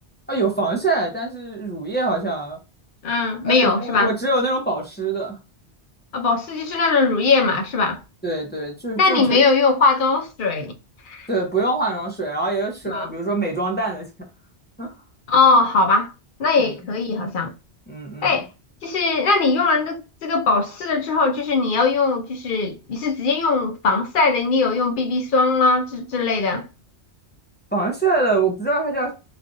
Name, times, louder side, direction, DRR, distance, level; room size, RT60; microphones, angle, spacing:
voice 1, 0.3-2.6 3.4-5.4 8.2-9.4 11.3-14.0 14.8-14.9 17.9-18.3 27.7-29.1, right 3 dB, 10° left, 0.5 m, -24 dB
voice 2, 3.0-4.1 6.1-8.0 9.0-10.7 11.1-11.3 12.9-13.1 15.3-16.1 16.4-17.5 18.2-18.5 18.8-26.7, left 4 dB, 55° left, 0.6 m, -20 dB
3.3 x 2.4 x 2.5 m
omnidirectional pair, 1.2 m